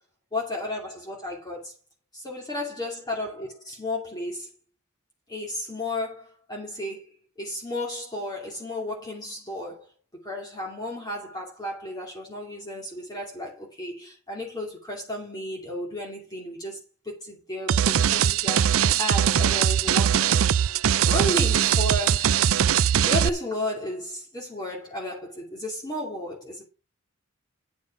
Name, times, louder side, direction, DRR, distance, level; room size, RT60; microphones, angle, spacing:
voice 1, 0.3-1.7 2.1-4.5 5.3-7.1 7.4-9.9 10.2-20.4 21.1-26.6, left 1 dB, 20° left, 2.6 m, -33 dB
sound 1, 17.7-23.3, right 9 dB, 75° right, 0.4 m, -21 dB
9.7 x 6.2 x 5.8 m
head